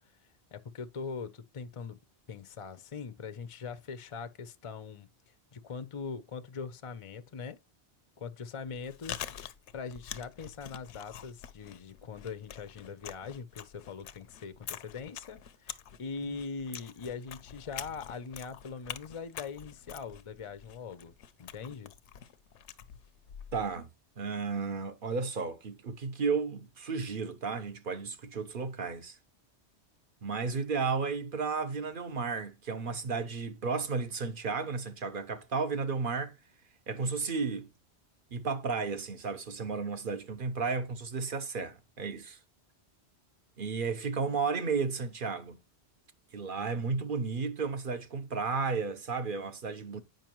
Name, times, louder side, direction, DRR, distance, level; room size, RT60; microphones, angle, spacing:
voice 1, 0.5-2.0 2.3-5.1 5.5-7.6 8.2-9.1 9.7-21.1 21.4-21.9, left 5 dB, 40° left, 0.5 m, -41 dB
Chewing mastication, 8.7-23.8, left 10 dB, 80° left, 0.9 m, -46 dB
voice 2, 23.5-23.9 24.2-29.2 30.2-36.4 36.9-37.7 38.3-42.4 43.6-45.6 46.3-50.0, right 4 dB, 50° right, 1.0 m, -33 dB
8.9 x 5.2 x 3.0 m
omnidirectional pair, 1.2 m